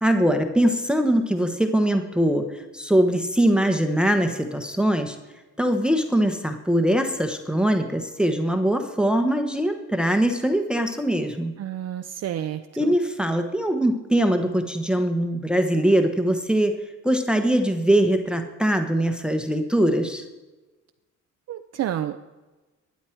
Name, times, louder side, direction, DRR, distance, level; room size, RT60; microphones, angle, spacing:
voice 1, 0.0-5.2 5.6-11.6 12.8-20.2, right 1 dB, 5° right, 6 dB, 1.0 m, -22 dB
voice 2, 11.6-12.9 21.5-22.2, right 11 dB, 55° right, 7 dB, 0.6 m, -30 dB
12.0 x 9.6 x 4.5 m, 1.2 s
cardioid pair, 90°, 30 cm